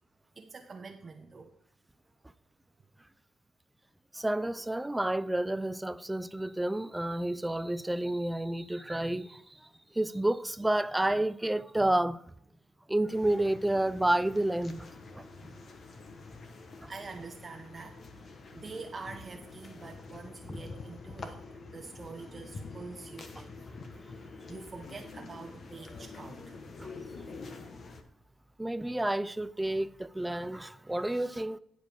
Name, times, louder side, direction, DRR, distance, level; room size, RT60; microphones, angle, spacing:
voice 1, 0.3-1.5 15.4-15.6 16.1-16.2 16.9-23.6 24.5-26.5 27.1-27.4, right 4 dB, 40° right, 0.9 m, -46 dB
voice 2, 4.1-9.3 10.0-12.2 12.9-14.9 16.8-16.9 20.5-20.6 28.6-31.6, right 1 dB, 10° right, 0.5 m, -30 dB
sound 1, 13.1-28.0, left 3 dB, 50° left, 1.2 m, -46 dB
11.0 x 5.0 x 5.2 m
cardioid pair, 75°, 0 cm